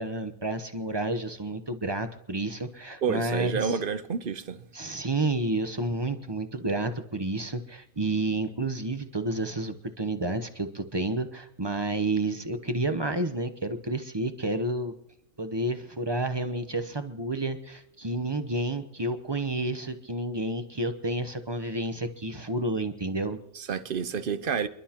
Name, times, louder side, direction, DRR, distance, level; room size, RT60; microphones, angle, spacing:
voice 1, 0.0-3.8 4.7-14.9 15.4-23.4, right 2 dB, 25° right, 0.8 m, -30 dB
voice 2, 3.0-4.7 23.6-24.7, right 6 dB, 50° right, 0.8 m, -29 dB
28.5 x 12.0 x 2.9 m
omnidirectional pair, 1.4 m